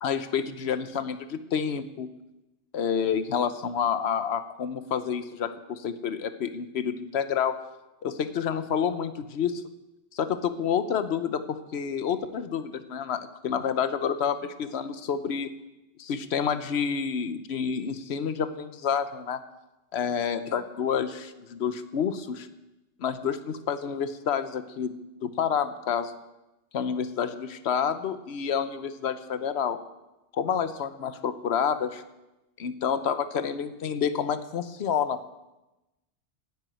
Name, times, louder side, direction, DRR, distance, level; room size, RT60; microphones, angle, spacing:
voice 1, 0.0-2.1 2.7-7.5 8.0-9.6 10.1-15.5 16.0-19.4 19.9-22.5 23.0-24.9 25.2-26.1 26.7-29.8 30.3-32.0 32.6-35.2, left 7 dB, 70° left, 11 dB, 1.1 m, -29 dB
10.5 x 9.2 x 9.1 m, 1.0 s
omnidirectional pair, 1.1 m